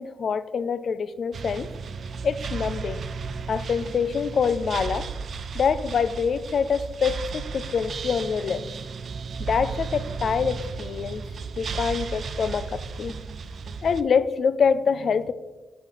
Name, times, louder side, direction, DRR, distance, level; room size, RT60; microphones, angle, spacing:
voice 1, 0.0-1.7 2.2-3.0 3.5-5.1 5.5-8.6 9.4-11.2 11.6-13.1 13.8-15.3, left 6 dB, 55° left, 14 dB, 0.4 m, -25 dB
sound 1, 1.3-14.0, right 5 dB, 55° right, 0.4 m, -34 dB
7.5 x 3.2 x 5.6 m, 1.2 s
cardioid pair, 100°, 0 cm